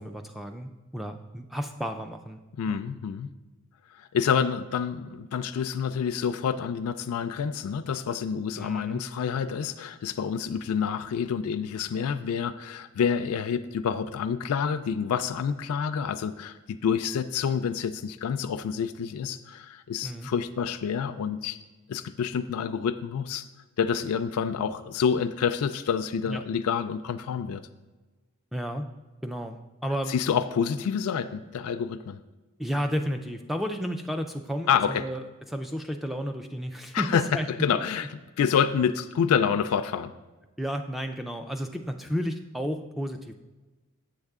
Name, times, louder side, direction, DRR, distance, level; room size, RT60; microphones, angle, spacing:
voice 1, 0.0-2.4 2.7-2.8 8.6-9.0 20.0-20.3 26.3-26.4 28.5-28.9 29.2-30.1 32.6-37.5 37.7-37.8 40.6-43.3, equal, ahead, 5 dB, 0.3 m, -32 dB
voice 2, 2.6-3.3 3.9-21.6 21.9-23.5 23.8-27.6 30.1-32.2 34.7-35.0 36.9-38.1 38.4-40.1, left 7 dB, 85° left, 10 dB, 0.3 m, -28 dB
7.9 x 6.6 x 3.5 m, 1.2 s
head